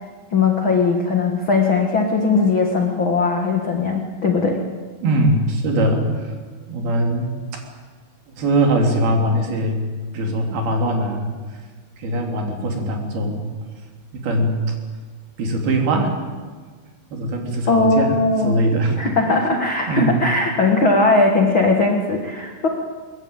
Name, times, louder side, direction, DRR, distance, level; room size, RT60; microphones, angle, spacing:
voice 1, 0.3-4.6 17.7-18.6 19.0-22.7, left 3 dB, 50° left, 2 dB, 1.5 m, -19 dB
voice 2, 5.0-6.3 6.7-7.6 8.4-9.9 10.1-11.3 12.0-13.5 14.1-14.7 15.4-16.1 17.1-18.2 18.4-19.1 19.9-20.2 21.1-21.2, right 1 dB, 60° right, 2 dB, 4.9 m, -21 dB
21.5 x 21.5 x 9.0 m, 1.5 s
omnidirectional pair, 5.0 m